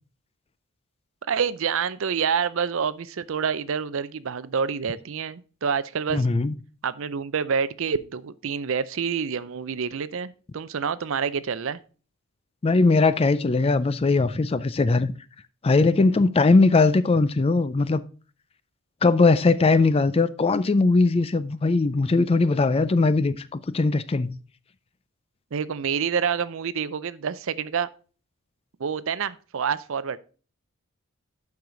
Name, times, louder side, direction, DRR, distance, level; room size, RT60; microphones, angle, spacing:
voice 1, 1.3-6.3 6.8-11.8 25.5-27.9 28.8-30.2, right 6 dB, 60° right, 0.5 m, -27 dB
voice 2, 6.1-6.5 12.6-15.1 15.6-18.0 19.0-24.4, left 3 dB, 25° left, 0.4 m, -20 dB
11.5 x 4.8 x 3.8 m
head